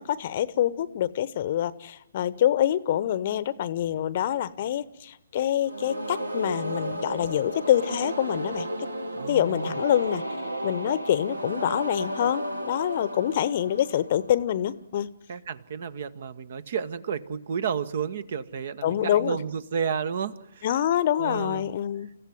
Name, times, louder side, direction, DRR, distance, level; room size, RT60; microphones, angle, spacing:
voice 1, 0.0-8.9 9.3-10.2 10.6-15.1 18.8-19.4 20.6-22.1, left 11 dB, 40° left, 18 dB, 1.0 m, -26 dB
sound 1, 5.6-14.5, right 1 dB, 80° right, 2.3 m, -33 dB
voice 2, 9.1-9.8 15.3-20.7 21.2-21.7, right 6 dB, 45° right, 17 dB, 1.1 m, -31 dB
29.0 x 15.0 x 9.4 m, 0.79 s
figure-of-eight pair, 130°, 0 cm